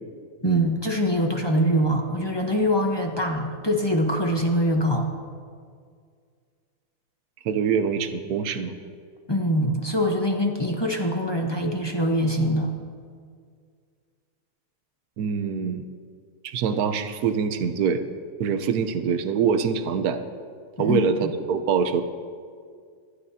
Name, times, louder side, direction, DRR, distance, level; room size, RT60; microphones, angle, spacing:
voice 1, 0.4-5.1 9.3-12.7 20.8-21.3, equal, 25° left, 1 dB, 0.6 m, -24 dB
voice 2, 7.4-8.8 15.2-15.9 16.4-18.0 18.4-20.2 20.8-22.0, right 6 dB, 65° right, 8 dB, 1.1 m, -24 dB
25.0 x 11.5 x 2.8 m, 2.1 s
omnidirectional pair, 2.0 m